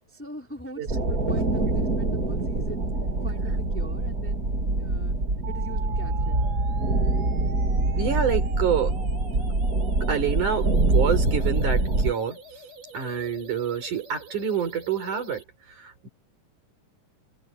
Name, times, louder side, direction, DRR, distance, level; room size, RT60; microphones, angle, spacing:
voice 1, 0.1-2.9 3.2-5.2 5.5-6.4, right 1 dB, 5° left, 3.1 m, -42 dB
sound 1, 0.9-12.1, right 2 dB, 30° right, 3.3 m, -25 dB
sound 2, 5.4-15.4, right 4 dB, 90° right, 7.4 m, -43 dB
voice 2, 8.0-9.3 10.1-12.4 12.9-15.4 15.7-16.1, right 7 dB, 70° right, 6.2 m, -27 dB
omnidirectional pair, 3.7 m